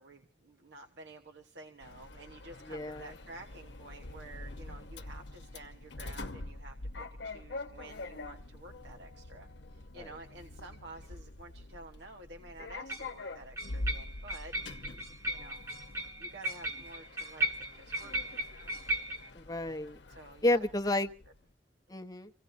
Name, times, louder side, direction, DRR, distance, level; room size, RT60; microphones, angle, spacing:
voice 1, 0.0-14.9 15.3-15.6 16.2-18.5 20.1-21.0, right 2 dB, 70° right, 4 dB, 1.2 m, -51 dB
Sliding door, 1.8-21.4, left 2 dB, 70° left, 0.9 m, -45 dB
voice 2, 2.7-3.1 9.9-10.1 19.3-20.0 20.4-21.1 21.9-22.3, left 1 dB, 20° left, 5 dB, 0.9 m, -31 dB
sound 1, 10.7-10.8 12.9-13.1 13.6-19.3, right 1 dB, 15° right, 1.3 m, -36 dB
27.5 x 17.0 x 2.7 m, 0.36 s
head